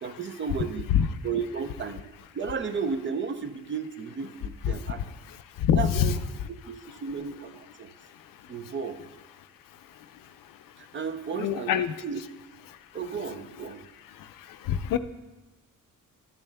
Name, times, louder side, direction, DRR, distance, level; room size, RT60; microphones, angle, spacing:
voice 1, 0.0-0.9 1.2-2.0 2.3-5.0 5.8-6.1 6.5-7.9 8.5-9.0 10.8-12.2 12.9-13.9, right 6 dB, 35° right, 9 dB, 0.5 m, -33 dB
voice 2, 5.3-6.2 11.3-12.0 14.1-15.0, left 9 dB, 85° left, 10 dB, 0.6 m, -25 dB
12.5 x 10.5 x 2.2 m, 1.1 s
cardioid pair, 150°, 32 cm